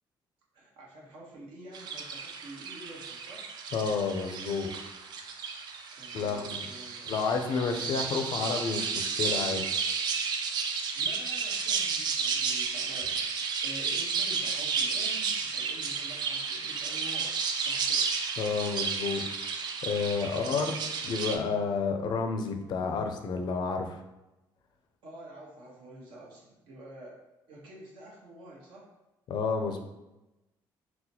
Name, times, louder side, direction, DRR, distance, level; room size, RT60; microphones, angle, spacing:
voice 1, 0.5-3.5 5.9-7.2 10.9-18.1 25.0-27.2 27.5-28.9, right 1 dB, 85° right, -3 dB, 1.0 m, -48 dB
sound 1, 1.7-21.4, right 5 dB, 60° right, 0.4 m, -32 dB
voice 2, 3.7-4.7 6.1-6.6 7.1-9.6 18.4-19.3 19.8-24.0 29.3-29.8, left 5 dB, 60° left, 5 dB, 0.4 m, -30 dB
3.9 x 2.1 x 2.8 m, 1.0 s
cardioid pair, 105°, 8 cm